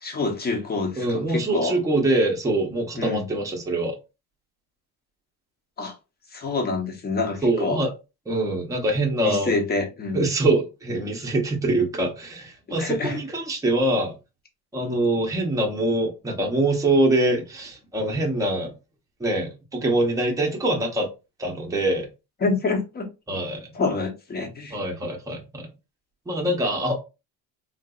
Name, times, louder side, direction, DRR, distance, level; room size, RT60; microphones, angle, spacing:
voice 1, 0.0-1.8 3.0-3.3 5.8-5.9 6.3-7.8 9.2-10.3 12.8-13.2 22.4-23.1 23.7-24.8, left 3 dB, 25° left, 0.8 m, -27 dB
voice 2, 1.0-4.0 7.4-7.9 8.3-9.5 10.1-14.1 14.7-18.7 19.2-21.1 21.4-22.1 23.3-23.7 24.7-25.7 26.3-27.0, right 1 dB, 10° right, 0.8 m, -24 dB
3.8 x 2.5 x 2.3 m
cardioid pair, 145°, 40 cm